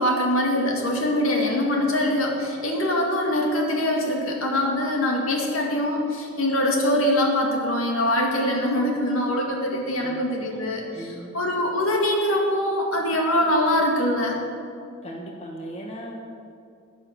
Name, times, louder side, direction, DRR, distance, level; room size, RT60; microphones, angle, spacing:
voice 1, 0.0-11.0 11.3-14.4, left 1 dB, 75° left, 0 dB, 2.1 m, -23 dB
voice 2, 10.0-10.6 10.9-11.4 15.0-16.1, right 1 dB, 30° left, -1 dB, 1.5 m, -38 dB
10.5 x 10.0 x 6.4 m, 2.3 s
head